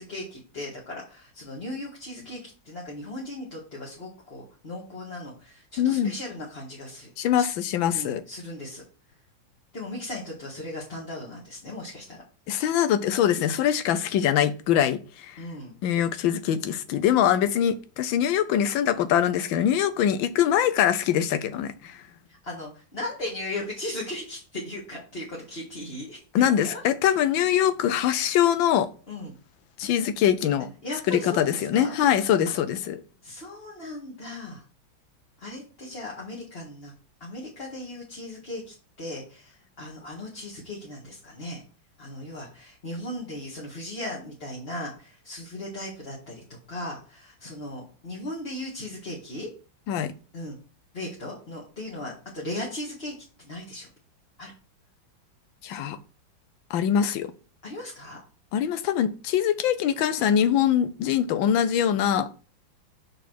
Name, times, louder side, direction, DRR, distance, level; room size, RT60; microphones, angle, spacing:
voice 1, 0.0-7.1 7.4-7.5 7.9-8.8 9.7-12.2 12.5-12.6 15.4-15.7 22.3-26.8 29.1-29.4 30.8-32.0 33.2-34.6 35.4-36.9 37.2-41.6 42.0-49.5 50.3-50.6 50.9-53.1 53.4-53.9 54.4-54.5 57.6-58.2, left 1 dB, 30° left, 1.8 m, -37 dB
voice 2, 5.8-6.1 7.2-8.2 12.5-15.4 15.8-22.0 26.3-28.9 29.8-30.7 31.1-33.0 49.9-50.1 55.6-56.0 56.7-57.3 58.5-62.3, left 10 dB, 85° left, 1.4 m, -23 dB
6.3 x 5.2 x 4.5 m
omnidirectional pair, 2.1 m